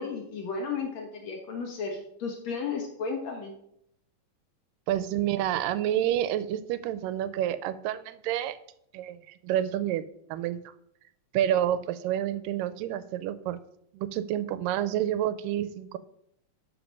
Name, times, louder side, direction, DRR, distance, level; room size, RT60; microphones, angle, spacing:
voice 1, 0.0-3.5, left 5 dB, 60° left, 1 dB, 2.2 m, -34 dB
voice 2, 4.9-8.6 8.9-9.2 9.4-10.0 10.3-10.6 11.3-13.6 13.9-16.0, right 11 dB, 80° right, 14 dB, 2.1 m, -28 dB
12.0 x 5.0 x 5.2 m, 0.74 s
omnidirectional pair, 4.1 m